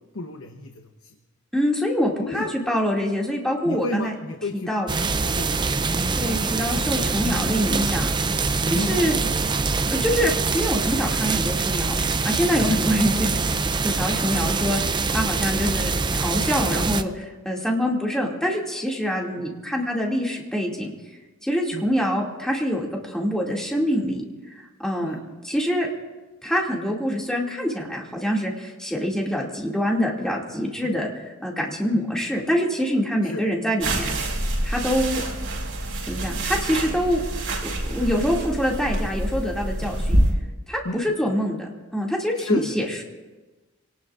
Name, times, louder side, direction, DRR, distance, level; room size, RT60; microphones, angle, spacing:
voice 1, 0.1-1.2 2.2-2.5 3.6-6.0 8.7-9.0 12.7-12.8 19.4-19.5 21.7-21.9 25.0-25.2 30.8-30.9 31.9-32.0 33.2-33.4 39.8-39.9 40.8-41.0 42.4-42.8, left 3 dB, 90° left, 4 dB, 1.0 m, -31 dB
voice 2, 1.5-4.1 4.5-4.9 6.1-8.1 8.7-9.2 9.9-12.0 12.2-13.3 13.8-20.9 21.4-24.2 24.8-25.2 25.4-25.9 26.4-31.1 31.4-34.1 34.6-35.2 36.0-37.2 37.6-40.2 40.7-43.0, equal, 5° left, -2 dB, 2.4 m, -25 dB
sound 1, 4.9-17.0, right 4 dB, 20° right, 0.5 m, -24 dB
sound 2, 33.8-40.3, right 1 dB, 75° right, 4.8 m, -26 dB
26.5 x 18.5 x 2.5 m, 1.2 s
head